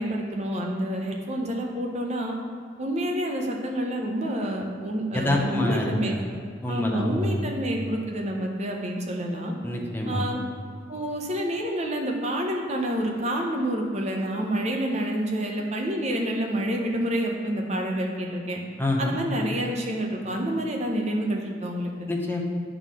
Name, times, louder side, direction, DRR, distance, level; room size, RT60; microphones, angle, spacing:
voice 1, 0.0-2.4 2.8-6.2 6.7-9.5 10.1-10.4 10.9-18.6 19.0-22.1, right 1 dB, 40° right, 1 dB, 0.9 m, -28 dB
voice 2, 5.1-6.3 6.6-7.5 9.6-10.3 18.8-19.2 22.1-22.4, left 1 dB, 10° left, -1 dB, 0.8 m, -26 dB
8.7 x 3.8 x 6.2 m, 2.2 s
head